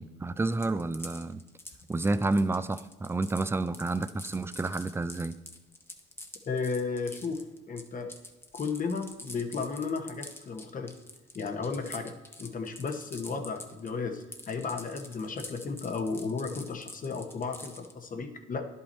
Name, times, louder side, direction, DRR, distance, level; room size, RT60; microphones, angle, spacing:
voice 1, 0.0-1.4 1.9-5.4, right 2 dB, 10° right, 14 dB, 0.4 m, -30 dB
sound 1, 0.5-13.9 14.2-17.9, left 1 dB, 10° left, 0.9 m, -46 dB
voice 2, 6.5-8.1 8.5-10.9 11.3-12.1 12.4-18.6, left 4 dB, 45° left, 6 dB, 1.0 m, -34 dB
10.5 x 5.6 x 4.2 m, 1.1 s
cardioid pair, 90°, 20 cm